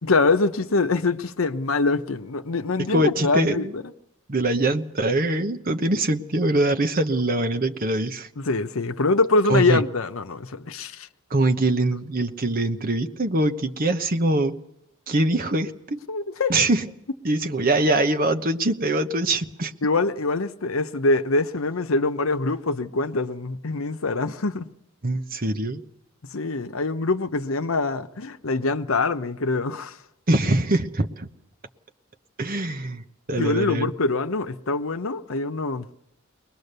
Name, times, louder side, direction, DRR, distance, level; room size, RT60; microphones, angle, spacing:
voice 1, 0.0-3.8 8.4-11.1 16.1-16.6 19.8-24.7 26.3-30.0 33.4-35.9, left 3 dB, 80° left, 0.9 m, -24 dB
voice 2, 2.9-3.7 4.3-8.3 9.5-9.8 11.3-14.5 15.1-16.0 16.5-16.8 17.2-19.7 25.0-25.8 30.3-31.3 32.4-33.9, right 2 dB, 45° right, 1.1 m, -23 dB
22.5 x 19.5 x 6.8 m
head